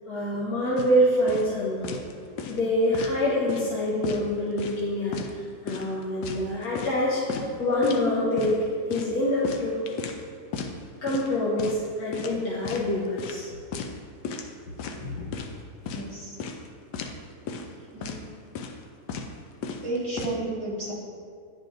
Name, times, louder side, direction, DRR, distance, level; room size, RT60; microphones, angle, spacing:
voice 1, 0.1-2.0 2.5-5.2 5.6-7.2 7.6-8.6 8.9-9.8 11.0-13.5 15.0-15.3, left 1 dB, 65° left, -8 dB, 1.5 m, -25 dB
sound 1, 0.8-0.9 1.3-1.5 1.8-2.1 2.4-3.2 3.5-3.7 4.0-4.8 5.1-5.3 5.7-7.0 7.3-7.5 7.8-8.0 8.4-8.6 8.9-10.2 10.5-10.7 11.1-11.3 11.6-11.9 12.1-12.9 13.2-13.4 13.7-14.0 14.2-14.5 14.8-15.5 15.9-16.0 16.4-16.7 16.9-17.2 17.5-17.7 18.0-18.2 18.6-18.8 19.1-19.3 19.6-20.4, left 5 dB, 85° left, 1.2 m, -35 dB
voice 2, 15.9-16.4 17.6-18.3 19.8-20.9, right 2 dB, 15° right, -7 dB, 1.7 m, -33 dB
10.5 x 5.1 x 2.5 m, 2.2 s
omnidirectional pair, 1.7 m